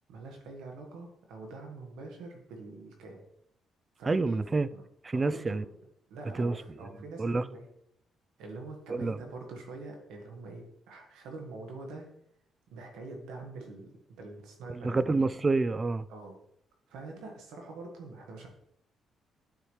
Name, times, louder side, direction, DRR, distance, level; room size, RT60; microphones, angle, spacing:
voice 1, 0.1-3.2 4.0-4.4 4.7-4.8 5.1-5.6 6.1-7.7 8.4-12.1 12.7-13.9 14.2-15.0 16.1-16.4 16.9-18.5, right 3 dB, 90° right, 1.6 m, -44 dB
voice 2, 4.1-4.7 5.0-5.6 6.3-6.6 7.2-7.4 8.9-9.2 14.7-16.1, right 3 dB, 30° right, 0.3 m, -28 dB
9.0 x 4.8 x 3.3 m
cardioid pair, 90°, 0 cm